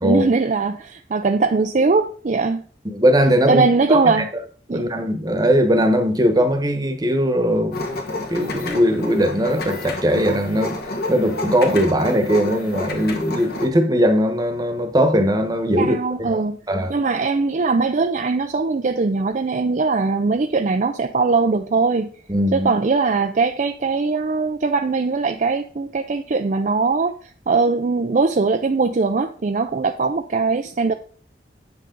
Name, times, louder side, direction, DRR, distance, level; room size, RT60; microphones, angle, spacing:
voice 1, 0.0-2.6 3.5-4.3 4.7-4.8 15.8-16.6 16.9-22.1 22.5-30.9, right 4 dB, 45° right, 0.4 m, -20 dB
voice 2, 2.9-4.2 4.7-8.0 8.3-10.8 11.1-16.4 16.7-16.9 22.3-22.7, equal, 20° right, 1.1 m, -19 dB
sound 1, 7.7-13.7, left 2 dB, 60° left, 1.6 m, -29 dB
8.7 x 6.7 x 3.9 m
head